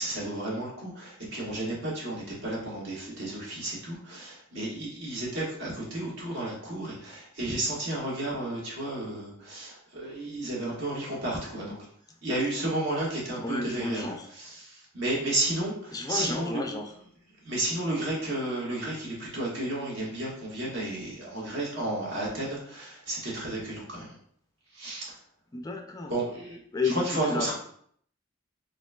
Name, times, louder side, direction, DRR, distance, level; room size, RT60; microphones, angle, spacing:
voice 1, 0.0-11.8 12.2-16.7 17.4-24.1 24.7-25.1 26.1-26.6 26.8-27.5, right 1 dB, 65° right, -5 dB, 1.6 m, -32 dB
voice 2, 13.4-14.3 15.9-16.9 25.5-26.1 26.7-27.0 27.3-27.5, left 3 dB, 20° left, 4 dB, 0.3 m, -31 dB
4.2 x 3.9 x 2.3 m, 0.63 s
head